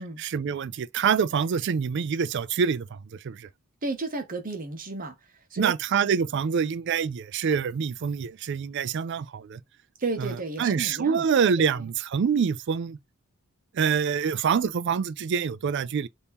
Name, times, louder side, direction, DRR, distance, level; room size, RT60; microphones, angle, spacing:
voice 1, 0.2-2.9 3.2-3.5 5.6-9.6 10.2-10.3 10.6-13.0 13.7-16.1, right 6 dB, 60° right, 0.4 m, -26 dB
voice 2, 3.8-5.2 5.5-5.7 10.0-11.3 11.6-11.8, right 3 dB, 45° right, 0.8 m, -32 dB
3.6 x 2.6 x 2.8 m
head